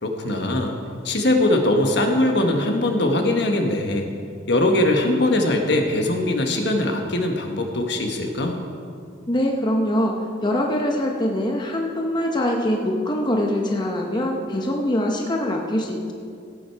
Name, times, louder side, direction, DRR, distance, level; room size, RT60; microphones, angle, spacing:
voice 1, 0.0-0.7 1.0-4.1 4.5-8.6, left 1 dB, 60° left, 3 dB, 1.3 m, -21 dB
voice 2, 9.3-10.1 10.4-16.1, left 1 dB, 25° left, 0 dB, 0.9 m, -23 dB
16.5 x 8.5 x 4.6 m, 2.3 s
head